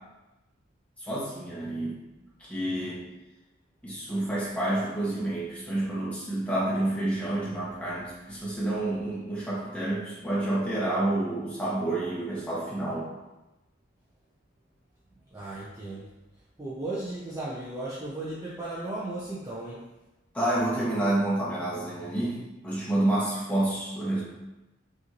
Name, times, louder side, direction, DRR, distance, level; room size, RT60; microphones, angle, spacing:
voice 1, 1.0-2.0 2.4-3.0 3.8-13.1 20.3-24.2, right 1 dB, 5° left, -8 dB, 1.2 m, -29 dB
voice 2, 15.3-16.1 16.6-19.8, right 2 dB, 15° right, -9 dB, 0.6 m, -35 dB
5.1 x 2.7 x 3.0 m, 1.0 s
head